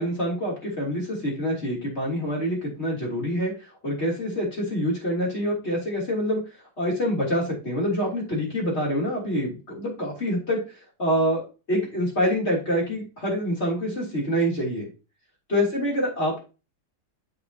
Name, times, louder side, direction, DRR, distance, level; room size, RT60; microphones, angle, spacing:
voice 1, 0.0-6.4 6.8-10.6 11.0-14.9 15.5-16.4, equal, 40° left, -3 dB, 3.5 m, -26 dB
7.5 x 6.4 x 2.9 m, 0.31 s
omnidirectional pair, 1.8 m